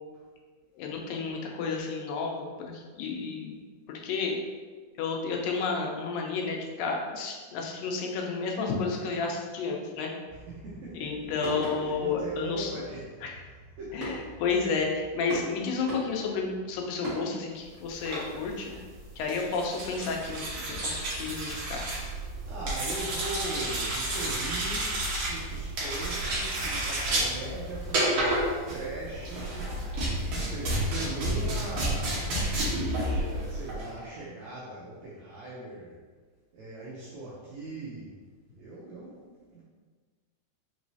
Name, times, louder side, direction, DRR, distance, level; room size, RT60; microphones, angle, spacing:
voice 1, 0.8-3.6 3.9-4.4 5.0-10.1 11.0-12.7 13.2-13.3 13.9-18.7 19.2-21.9, left 4 dB, 90° left, 1 dB, 2.3 m, -31 dB
sound 1, 10.2-17.2, equal, 40° right, 1.2 m, -41 dB
voice 2, 10.3-11.3 11.5-13.2 13.8-14.4 22.5-28.4 28.7-29.7 30.2-32.5 33.3-36.0 36.5-38.1 38.6-39.6, right 2 dB, 80° right, -6 dB, 1.6 m, -40 dB
sound 2, 17.9-33.9, right 1 dB, 65° right, 1.7 m, -31 dB
5.3 x 3.0 x 2.7 m, 1.5 s
omnidirectional pair, 3.9 m